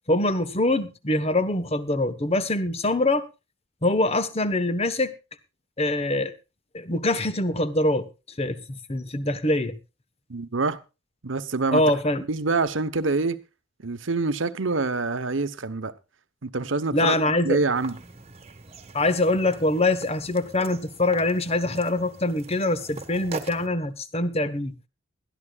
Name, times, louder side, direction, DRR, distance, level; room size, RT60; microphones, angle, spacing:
voice 1, 0.1-3.2 3.8-5.1 5.8-6.3 6.7-8.1 8.4-9.8 11.7-12.2 16.9-17.6 18.9-24.7, left 2 dB, 30° left, 1.2 m, -24 dB
voice 2, 10.3-10.8 11.2-11.8 12.3-13.4 13.8-15.9 16.4-17.1 17.4-18.0, right 3 dB, 80° right, 1.0 m, -26 dB
sound 1, 17.8-23.7, right 3 dB, 35° right, 1.4 m, -42 dB
21.0 x 13.0 x 2.4 m
head